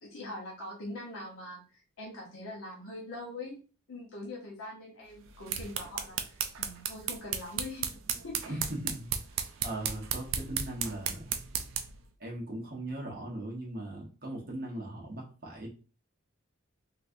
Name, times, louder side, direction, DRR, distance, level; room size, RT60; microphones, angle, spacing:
voice 1, 0.0-3.6 3.9-8.6, left 2 dB, 80° left, -3 dB, 1.0 m, -43 dB
sound 1, 5.2-12.0, right 8 dB, 70° right, 0.4 m, -35 dB
voice 2, 8.4-9.1 9.6-11.3 12.2-15.7, right 1 dB, 45° right, -3 dB, 1.1 m, -39 dB
3.3 x 3.2 x 2.6 m, 0.36 s
head